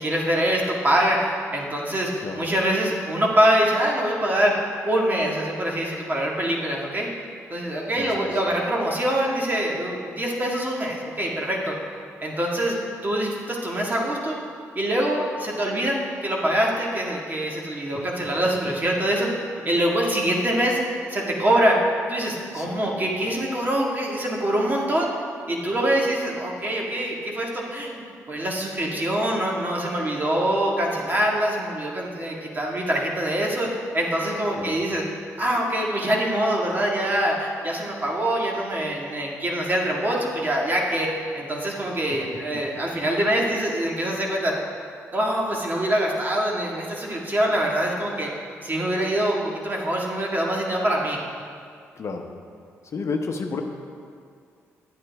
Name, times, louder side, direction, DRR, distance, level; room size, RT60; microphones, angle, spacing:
voice 1, 0.0-7.1 7.5-11.7 12.2-12.8 13.0-14.4 14.8-19.3 19.6-20.8 21.1-21.8 22.1-25.1 25.5-33.7 33.9-35.0 35.4-41.1 41.3-44.5 45.1-48.3 48.6-51.2, right 1 dB, 30° right, -2 dB, 1.9 m, -24 dB
voice 2, 7.9-8.4 17.9-18.1 22.5-23.3 34.6-34.8 42.1-42.2 51.9-52.3 52.8-53.6, left 4 dB, 55° left, 4 dB, 0.8 m, -32 dB
9.9 x 8.6 x 3.5 m, 2.3 s
supercardioid pair, 55°, 6 cm